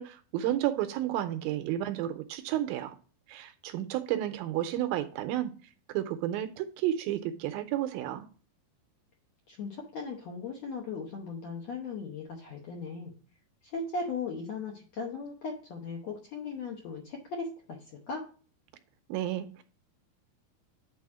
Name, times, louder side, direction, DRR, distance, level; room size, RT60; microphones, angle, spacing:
voice 1, 0.0-3.0 3.3-5.6 5.9-8.3 19.1-19.6, right 12 dB, 80° right, 2.3 m, -32 dB
voice 2, 9.5-13.1 13.6-18.2, left 4 dB, 70° left, 1.7 m, -38 dB
8.7 x 4.1 x 4.8 m
omnidirectional pair, 4.4 m